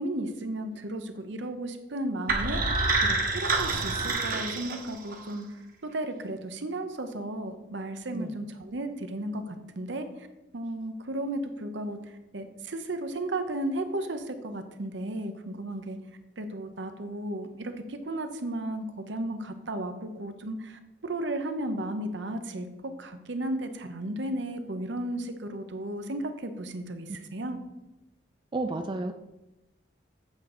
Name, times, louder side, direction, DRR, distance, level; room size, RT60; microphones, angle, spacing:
voice 1, 0.0-5.5 5.8-10.3 10.5-16.0 16.4-27.6, right 1 dB, 70° right, 8 dB, 0.8 m, -34 dB
sound 1, 2.3-5.3, right 3 dB, 50° right, 1.1 m, -27 dB
voice 2, 28.5-29.1, right 2 dB, 25° right, 6 dB, 0.3 m, -31 dB
8.3 x 3.8 x 6.7 m, 0.99 s
head